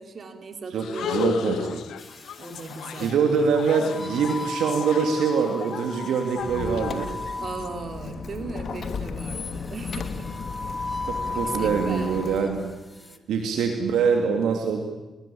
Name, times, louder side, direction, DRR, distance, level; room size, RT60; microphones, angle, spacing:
voice 1, 0.0-1.3 2.4-3.6 7.4-10.3 10.6-10.7 11.3-12.3, right 4 dB, 55° right, 6 dB, 4.0 m, -38 dB
voice 2, 0.7-1.8 3.0-7.2 11.1-12.6 13.0-14.8, right 6 dB, 75° right, 4 dB, 2.9 m, -24 dB
sound 1, 0.8-7.7, left 10 dB, 75° left, 1.2 m, -35 dB
sound 2, 2.0-3.1 3.8-8.1 9.3-12.5 12.9-13.2, left 2 dB, 25° left, 2.6 m, -36 dB
Squeak, 6.4-12.8, left 5 dB, 55° left, 2.8 m, -35 dB
30.0 x 20.0 x 8.8 m, 1.1 s
hypercardioid pair, 45°, 0 cm